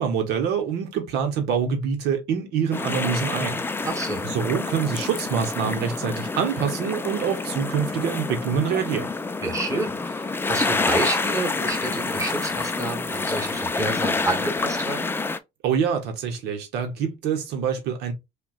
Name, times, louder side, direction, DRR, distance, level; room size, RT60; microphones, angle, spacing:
voice 1, 0.0-3.6 4.2-9.1 15.6-18.1, right 7 dB, 80° right, 0.9 m, -25 dB
sound 1, 2.7-15.4, left 3 dB, 15° left, 0.3 m, -28 dB
voice 2, 3.8-4.2 9.4-15.1, right 2 dB, 20° right, 1.2 m, -29 dB
5.6 x 2.2 x 2.3 m
cardioid pair, 110°, 17 cm